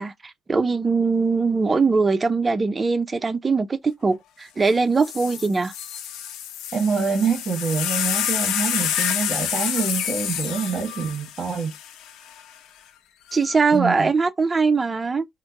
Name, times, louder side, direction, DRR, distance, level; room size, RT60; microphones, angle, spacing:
voice 1, 0.0-5.7 13.3-15.3, right 4 dB, 30° right, 0.5 m, -21 dB
sound 1, 4.6-4.7 5.0-12.4 13.3-13.8, left 9 dB, 80° left, 0.6 m, -28 dB
voice 2, 6.7-11.7 13.7-14.1, right 5 dB, 45° right, 1.4 m, -25 dB
4.3 x 2.2 x 2.7 m
cardioid pair, 75°, 0 cm